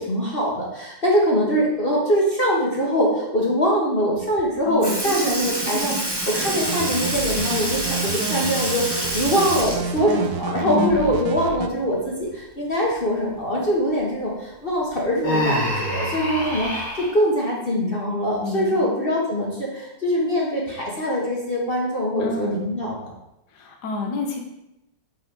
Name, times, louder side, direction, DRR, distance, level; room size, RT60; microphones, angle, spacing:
voice 1, 0.0-16.8 17.1-23.1, equal, 35° left, -3 dB, 1.2 m, -23 dB
Sink (filling or washing) / Liquid, 4.4-4.5 4.8-10.9 11.3-11.4 12.9-13.0 13.9-14.0 14.8-15.1 15.9-16.0, right 1 dB, 30° right, 0.5 m, -27 dB
voice 2, 4.7-5.0 10.6-11.1 18.4-18.9 22.2-22.5 23.5-24.4, left 3 dB, 65° left, 2 dB, 1.6 m, -28 dB
sound 1, 6.6-11.7, right 6 dB, 70° right, 0.9 m, -30 dB
Human voice, 15.2-17.1, equal, 90° left, 2.7 m, -25 dB
5.6 x 4.7 x 5.3 m, 0.88 s
omnidirectional pair, 2.0 m